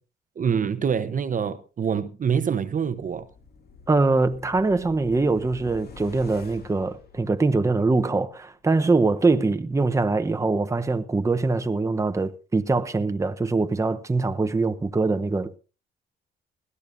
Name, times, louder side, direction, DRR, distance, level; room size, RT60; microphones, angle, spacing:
voice 1, 0.4-3.3, right 7 dB, 40° right, 0.9 m, -25 dB
sound 1, 2.9-7.9 8.2-8.3, left 5 dB, 50° left, 2.6 m, -47 dB
voice 2, 3.9-15.6, right 3 dB, 15° right, 0.9 m, -23 dB
21.0 x 14.0 x 2.6 m
cardioid pair, 90°, 20 cm